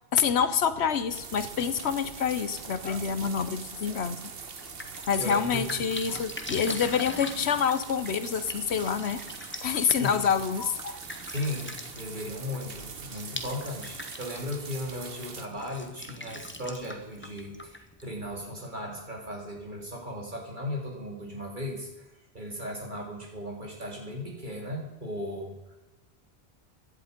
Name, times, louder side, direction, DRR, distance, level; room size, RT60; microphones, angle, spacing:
voice 1, 0.1-4.2 5.1-9.2 9.6-11.0, left 7 dB, 80° left, 13 dB, 1.2 m, -27 dB
sound 1, 1.1-15.5, right 5 dB, 65° right, 1.3 m, -43 dB
Drip, 4.4-18.5, left 1 dB, 10° left, 1.0 m, -43 dB
voice 2, 5.2-6.2 10.0-10.3 11.3-22.1 22.3-25.8, left 1 dB, 45° right, 0 dB, 3.5 m, -37 dB
16.0 x 11.0 x 5.2 m, 1.0 s
omnidirectional pair, 1.1 m